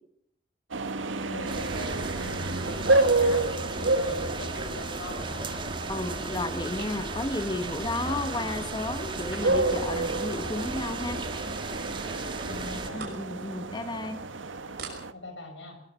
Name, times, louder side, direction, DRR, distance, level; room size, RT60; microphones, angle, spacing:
sound 1, 0.7-15.1, right 2 dB, 90° right, 1.3 m, -30 dB
voice 1, 1.3-5.6 12.2-13.2 15.1-15.8, left 2 dB, 80° left, 6 dB, 5.6 m, -41 dB
sound 2, 1.5-12.9, right 2 dB, 25° right, 1.7 m, -36 dB
sound 3, 2.7-3.1 4.5-5.3 5.8-6.1 6.7-7.2 9.1-9.8 11.2-11.5 11.8-11.9 12.2-12.4 12.7-13.3 13.7-13.9 14.4-14.5 14.8-14.9, right 4 dB, 55° right, 5.7 m, -44 dB
voice 2, 5.9-11.2 12.9-14.2, left 2 dB, 20° left, 8 dB, 1.2 m, -32 dB
22.0 x 21.5 x 5.8 m, 0.68 s
head